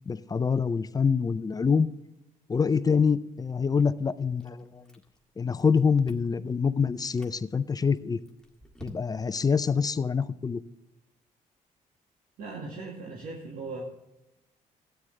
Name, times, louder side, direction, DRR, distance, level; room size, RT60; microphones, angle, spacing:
voice 1, 0.1-1.9 2.5-4.9 5.4-8.2 8.8-10.6, left 5 dB, 25° left, 15 dB, 0.5 m, -25 dB
Chewing mastication, 4.4-5.3 5.6-6.4 6.9-7.4 7.9-9.4, equal, 5° left, 1.8 m, -51 dB
voice 2, 12.4-13.8, right 3 dB, 65° right, -1 dB, 1.9 m, -38 dB
13.0 x 9.2 x 3.3 m, 0.94 s
cardioid pair, 80°, 15 cm